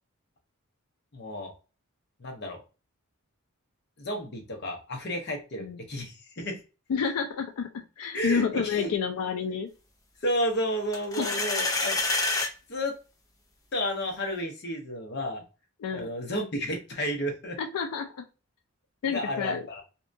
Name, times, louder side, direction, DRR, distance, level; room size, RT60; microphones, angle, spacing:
voice 1, 1.1-1.5 2.2-2.6 4.0-6.6 8.1-8.9 10.2-12.2 12.7-12.9 13.7-15.4 15.9-17.6 19.1-19.8, equal, 50° left, 3 dB, 0.7 m, -32 dB
voice 2, 6.9-9.7 11.2-11.3 11.6-11.7 15.8-16.1 17.6-18.2 19.0-19.6, left 6 dB, 90° left, 6 dB, 0.4 m, -29 dB
sound 1, 10.9-12.5, left 2 dB, 15° left, 0.4 m, -27 dB
2.7 x 2.2 x 2.4 m, 0.32 s
head